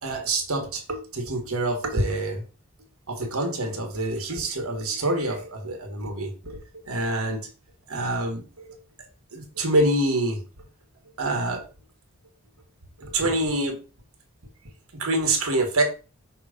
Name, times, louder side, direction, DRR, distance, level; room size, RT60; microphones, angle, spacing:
voice 1, 0.0-2.4 3.1-7.4 7.9-8.8 9.3-10.4 11.2-11.6 13.0-13.8 14.9-15.8, right 2 dB, 80° right, 3 dB, 1.6 m, -26 dB
6.0 x 3.0 x 5.1 m, 0.34 s
head